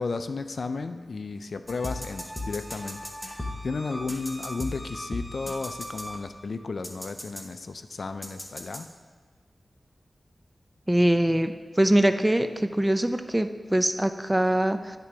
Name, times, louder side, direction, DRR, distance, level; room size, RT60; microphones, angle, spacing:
voice 1, 0.0-8.9, left 4 dB, 70° left, 9 dB, 0.4 m, -34 dB
sound 1, 1.7-6.5 6.8-7.4 8.2-8.8, left 1 dB, 15° left, 1.0 m, -37 dB
voice 2, 10.9-11.5 11.8-15.0, right 1 dB, 15° right, 8 dB, 0.5 m, -23 dB
10.5 x 3.7 x 4.6 m, 1.5 s
wide cardioid pair, 65°, 0 cm